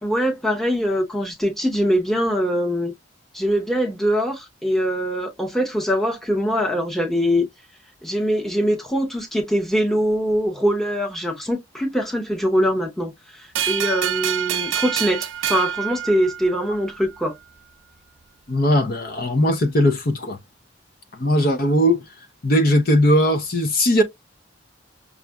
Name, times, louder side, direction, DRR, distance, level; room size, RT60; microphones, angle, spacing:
voice 1, 0.0-2.9 3.3-7.5 8.0-17.3, equal, ahead, 0.8 m, -23 dB
sound 1, 13.6-16.8, right 10 dB, 85° right, 0.5 m, -26 dB
voice 2, 18.5-20.4 21.1-22.0 22.4-24.0, equal, 50° left, 0.6 m, -19 dB
6.0 x 2.5 x 2.2 m
head